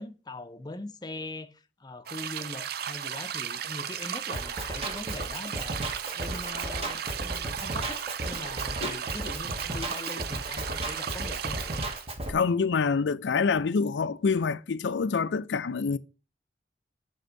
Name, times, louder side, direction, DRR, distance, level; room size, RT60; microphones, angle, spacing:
voice 1, 0.0-5.8 6.1-11.9, left 2 dB, 25° left, 0.6 m, -41 dB
sound 1, 2.1-12.1, right 9 dB, 60° right, 0.4 m, -35 dB
Drum kit, 4.3-12.3, right 1 dB, 35° right, 1.1 m, -35 dB
voice 2, 12.3-16.0, left 5 dB, 85° left, 0.4 m, -26 dB
7.7 x 3.5 x 6.3 m
head